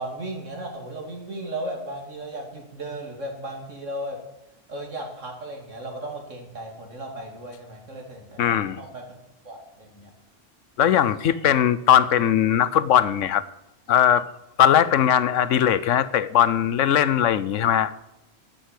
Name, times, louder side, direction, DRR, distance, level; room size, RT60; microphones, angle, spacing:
voice 1, 0.0-4.2 4.7-9.0 9.4-10.1 11.2-11.3, right 1 dB, 85° right, 3.0 m, -35 dB
voice 2, 8.4-8.8 10.8-13.4 13.9-14.2 14.6-17.9, left 10 dB, 90° left, 1.1 m, -19 dB
12.5 x 8.1 x 8.4 m
omnidirectional pair, 1.3 m